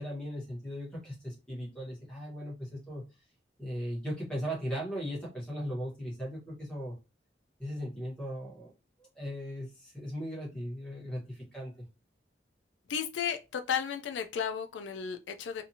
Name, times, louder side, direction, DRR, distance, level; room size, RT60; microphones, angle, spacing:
voice 1, 0.0-3.0 3.6-6.9 7.6-8.7 9.0-11.7, equal, 5° left, 1.2 m, -38 dB
voice 2, 12.9-15.6, left 7 dB, 75° left, 0.3 m, -34 dB
2.7 x 2.5 x 2.7 m
head